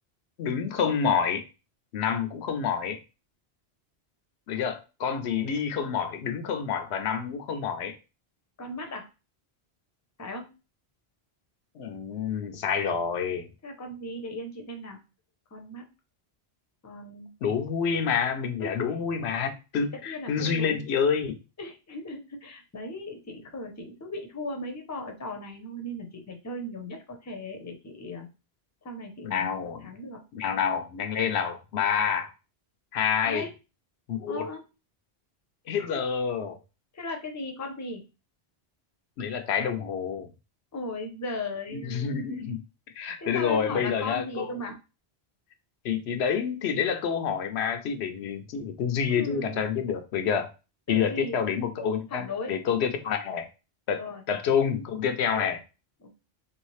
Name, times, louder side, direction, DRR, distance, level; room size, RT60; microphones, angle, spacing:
voice 1, 0.4-1.4 1.9-3.0 4.5-8.0 11.8-13.5 17.4-21.4 29.2-29.9 30.3-32.3 32.9-33.5 34.1-34.5 35.7-36.6 39.2-40.3 41.7-42.6 43.0-44.5 45.8-50.5 50.9-53.5 53.9-54.0 54.3-55.6, left 7 dB, 85° left, 0.9 m, -28 dB
voice 2, 8.6-9.1 10.2-10.5 13.6-15.0 15.5-15.9 16.8-17.3 18.6-18.9 19.9-20.9 21.6-28.3 28.8-30.2 33.2-33.5 34.3-34.6 36.9-38.0 40.7-42.4 43.2-44.8 49.1-49.9 50.9-51.6 52.1-52.5 53.9-54.2 55.3-55.6 56.0-56.1, left 2 dB, 20° left, 0.5 m, -37 dB
3.1 x 2.8 x 3.1 m
omnidirectional pair, 1.1 m